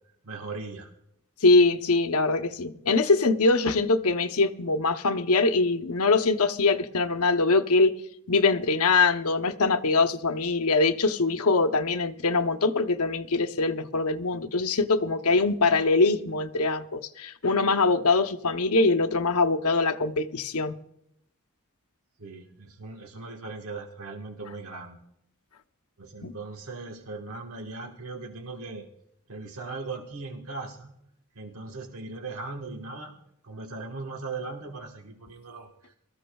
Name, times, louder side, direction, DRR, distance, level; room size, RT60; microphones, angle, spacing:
voice 1, 0.2-0.9 22.2-25.0 26.0-28.8 29.3-31.0 31.3-33.2 33.4-36.0, right 3 dB, 75° right, 1.4 m, -39 dB
voice 2, 1.4-7.9 8.3-20.8 26.2-26.3, left 3 dB, 80° left, 0.8 m, -23 dB
23.0 x 14.0 x 2.3 m
head